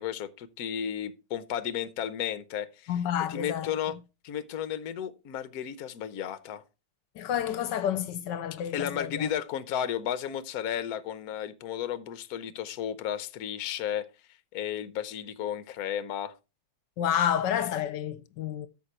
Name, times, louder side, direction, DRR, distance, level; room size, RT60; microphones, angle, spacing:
voice 1, 0.0-2.9 3.3-4.0 4.2-6.6 8.7-14.1 14.5-16.3, left 9 dB, 60° left, 1.2 m, -33 dB
voice 2, 2.9-3.7 7.2-9.3 17.0-18.7, left 9 dB, 80° left, 1.4 m, -29 dB
13.0 x 5.2 x 4.3 m
omnidirectional pair, 1.9 m